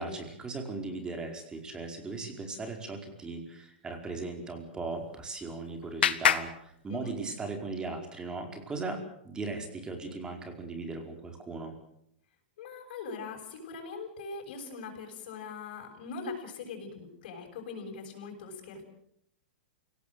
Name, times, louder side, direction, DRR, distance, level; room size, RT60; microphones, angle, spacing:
voice 1, 0.0-11.8, right 3 dB, 15° right, 5 dB, 4.9 m, -38 dB
Clapping, 4.9-7.5, left 9 dB, 85° left, 1.7 m, -31 dB
voice 2, 12.6-18.8, left 4 dB, 60° left, 1 dB, 7.5 m, -41 dB
28.0 x 18.0 x 7.8 m, 0.72 s
hypercardioid pair, 140°, 6 cm